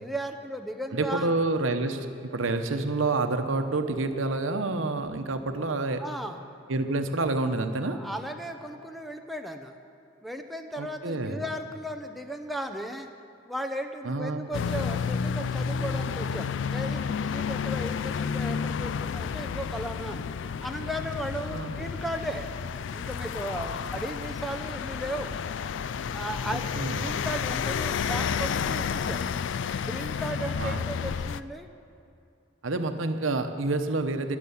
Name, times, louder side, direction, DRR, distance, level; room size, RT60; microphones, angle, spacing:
voice 1, 0.0-1.3 6.0-6.4 7.9-9.7 10.2-13.1 13.4-20.2 20.6-22.5 22.9-25.4 26.1-26.7 27.0-29.3 29.7-31.7, right 1 dB, ahead, 5 dB, 0.7 m, -36 dB
voice 2, 0.9-6.0 6.7-8.0 10.8-11.4 14.0-14.5 21.5-21.8 26.5-27.1 30.6-30.8 32.6-34.4, right 2 dB, 90° right, 7 dB, 0.9 m, -28 dB
sound 1, 14.5-31.4, left 6 dB, 65° left, 0.3 m, -31 dB
12.5 x 10.5 x 7.1 m, 2.7 s
head